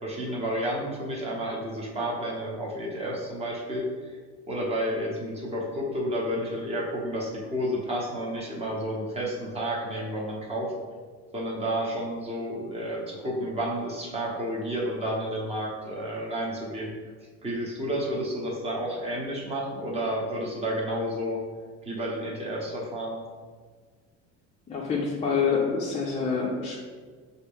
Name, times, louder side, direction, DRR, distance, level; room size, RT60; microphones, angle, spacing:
voice 1, 0.0-4.2 4.5-10.7 11.3-16.9 17.4-21.4 21.8-23.2, equal, 20° right, -3 dB, 0.9 m, -31 dB
voice 2, 24.7-26.8, left 5 dB, 20° left, -3 dB, 0.4 m, -26 dB
5.5 x 2.6 x 3.5 m, 1.5 s
cardioid pair, 150°, 32 cm